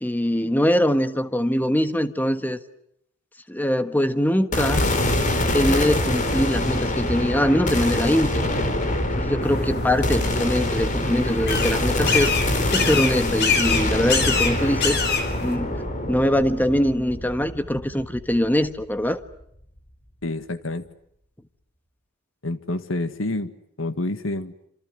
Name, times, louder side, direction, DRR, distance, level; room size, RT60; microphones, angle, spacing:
voice 1, 0.0-2.6 3.5-4.9 5.5-8.4 9.2-12.3 12.7-15.0 15.4-15.8 16.1-19.2, equal, 10° left, 10 dB, 1.4 m, -22 dB
sound 1, 4.5-18.8, left 1 dB, 40° left, 3.8 m, -25 dB
sound 2, 9.4-15.6, left 5 dB, 55° left, 4.9 m, -26 dB
voice 2, 20.2-20.9 22.4-23.5 23.8-24.5, left 2 dB, 70° left, 11 dB, 1.8 m, -28 dB
28.0 x 27.0 x 7.9 m, 0.73 s
head